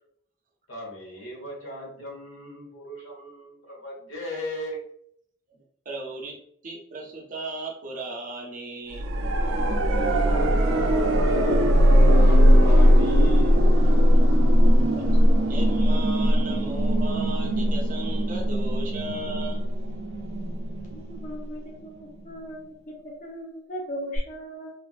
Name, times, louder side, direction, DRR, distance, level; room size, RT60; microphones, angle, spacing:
voice 1, 0.7-4.8 10.1-13.9, equal, 90° left, -3 dB, 1.2 m, -38 dB
voice 2, 5.9-9.1 14.9-15.2 15.5-19.7, right 2 dB, 40° right, -1 dB, 0.6 m, -36 dB
sound 1, 8.9-21.8 24.2-24.3, equal, 85° right, 0.5 m, -20 dB
voice 3, 20.9-22.7 23.0-24.7, equal, 40° left, -3 dB, 0.6 m, -38 dB
3.2 x 2.5 x 2.4 m, 0.69 s
head